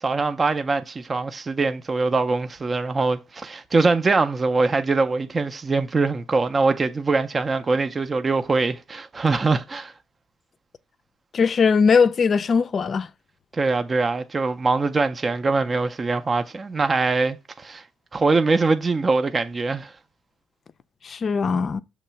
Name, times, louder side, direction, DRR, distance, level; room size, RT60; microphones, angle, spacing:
voice 1, 0.0-9.9 13.5-17.8 18.1-19.9, right 3 dB, 25° right, 0.5 m, -23 dB
voice 2, 11.3-13.1 21.0-21.8, left 5 dB, 40° left, 0.4 m, -20 dB
6.4 x 3.0 x 5.6 m
cardioid pair, 110°, 0 cm